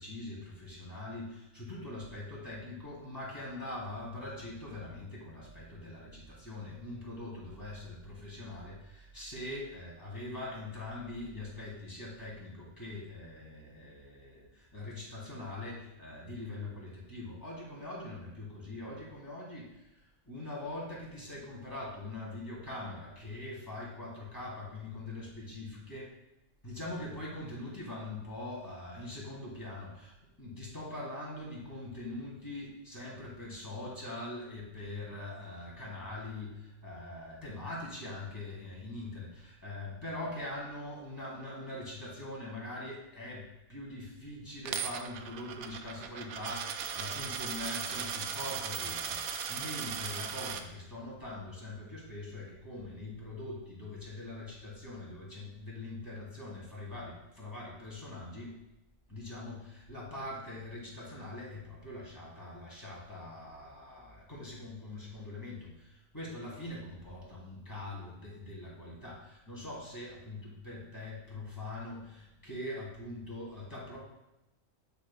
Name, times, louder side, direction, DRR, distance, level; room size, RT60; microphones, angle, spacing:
voice 1, 0.0-26.1 26.6-58.6 59.1-74.0, left 2 dB, 15° left, -5 dB, 2.4 m, -43 dB
Coin (dropping), 44.7-50.6, right 7 dB, 75° right, 0.9 m, -37 dB
9.8 x 5.2 x 2.2 m, 0.94 s
omnidirectional pair, 1.3 m